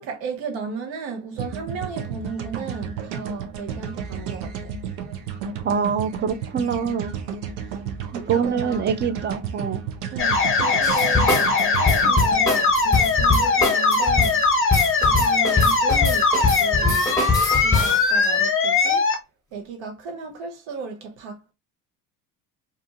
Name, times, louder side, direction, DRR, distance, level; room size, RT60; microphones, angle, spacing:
voice 1, 0.0-4.7 7.7-7.8 8.3-8.9 10.1-14.6 15.0-17.2 17.6-19.1 19.5-21.5, right 5 dB, 70° right, 1.0 m, -35 dB
sound 1, 1.4-13.6, right 7 dB, 85° right, 0.7 m, -33 dB
voice 2, 5.6-7.1 8.1-9.8, right 6 dB, 25° right, 0.4 m, -25 dB
sound 2, 10.2-19.2, left 4 dB, 25° left, 0.7 m, -20 dB
sound 3, 10.8-18.0, left 3 dB, 5° left, 1.3 m, -23 dB
2.6 x 2.4 x 2.7 m
supercardioid pair, 70°, 47 cm